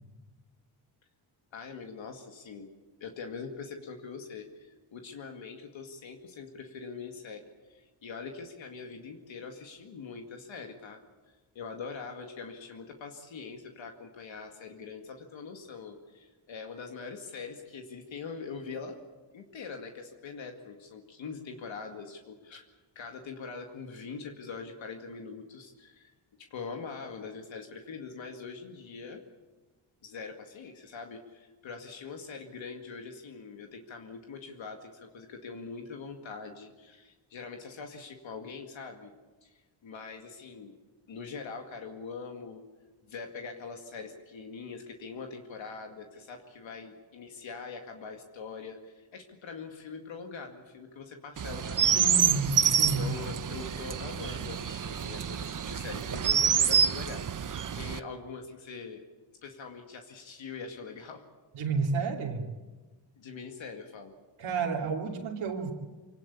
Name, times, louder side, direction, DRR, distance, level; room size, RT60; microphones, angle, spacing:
voice 1, 1.5-2.7 3.0-11.0 11.5-19.0 19.3-22.6 23.0-26.1 26.5-29.2 30.0-39.1 39.4-40.7 41.1-42.6 43.1-52.5 52.9-59.1 59.4-61.2 63.2-64.2, left 5 dB, 70° left, 3 dB, 2.2 m, -43 dB
Chirp tweet, 51.4-58.0, right 7 dB, 40° right, 0.9 m, -27 dB
voice 2, 51.9-53.1 61.5-62.4 64.4-65.7, right 4 dB, 85° right, -1 dB, 3.0 m, -31 dB
24.5 x 18.0 x 8.5 m, 1.3 s
cardioid pair, 80°, 48 cm